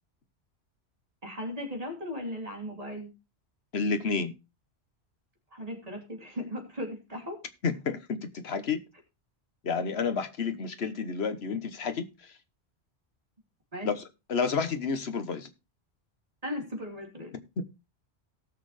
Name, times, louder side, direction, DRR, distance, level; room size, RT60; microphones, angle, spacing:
voice 1, 1.2-3.1 5.5-7.4 13.7-13.9 16.4-17.3, equal, 35° right, 3.0 m, -37 dB
voice 2, 3.7-4.3 7.6-8.8 9.6-12.3 13.8-14.0 14.3-15.5 17.6-17.7, left 5 dB, 70° left, 1.3 m, -30 dB
18.0 x 6.5 x 3.3 m
omnidirectional pair, 1.1 m